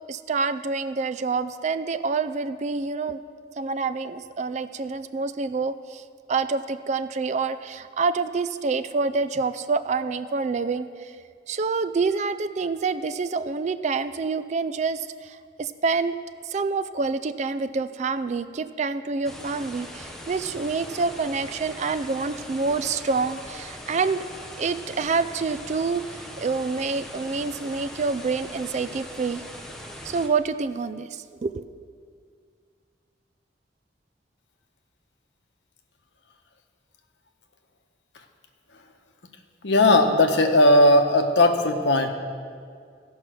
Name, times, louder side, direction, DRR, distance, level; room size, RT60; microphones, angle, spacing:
voice 1, 0.1-3.2 3.6-6.0 6.3-11.1 11.5-16.2 16.4-24.2 24.6-29.4 30.0-31.6, right 4 dB, 40° right, 12 dB, 0.4 m, -27 dB
sound 1, 19.2-30.3, equal, 5° left, 0.9 m, -41 dB
voice 2, 39.6-42.1, left 1 dB, 80° left, 5 dB, 1.0 m, -17 dB
16.0 x 5.5 x 6.2 m, 2.1 s
head